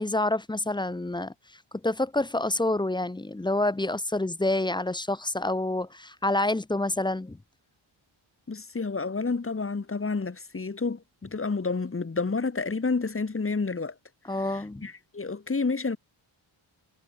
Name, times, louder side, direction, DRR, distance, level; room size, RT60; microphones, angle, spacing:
voice 1, 0.0-1.3 1.8-7.4 14.3-14.9, left 2 dB, 10° left, 0.7 m, -27 dB
voice 2, 8.5-13.9 14.4-16.0, left 4 dB, 25° left, 2.8 m, -30 dB
wide cardioid pair, 145°, 50 cm